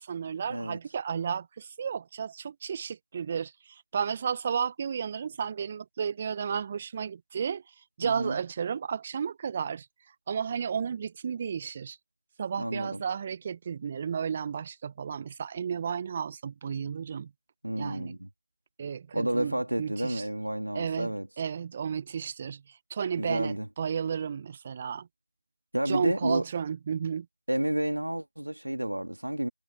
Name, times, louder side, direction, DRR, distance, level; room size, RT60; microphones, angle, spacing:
voice 1, 0.0-7.6 8.0-9.9 10.3-12.0 12.4-17.3 17.7-18.2 18.8-20.2 20.7-25.1 25.9-27.3, right 7 dB, 20° right, 0.7 m, -33 dB
voice 2, 8.0-8.4 12.6-13.0 17.6-18.3 19.1-21.3 23.2-23.7 25.7-26.5 27.5-29.5, right 1 dB, 85° right, 2.3 m, -30 dB
figure-of-eight pair, 170°, 0 cm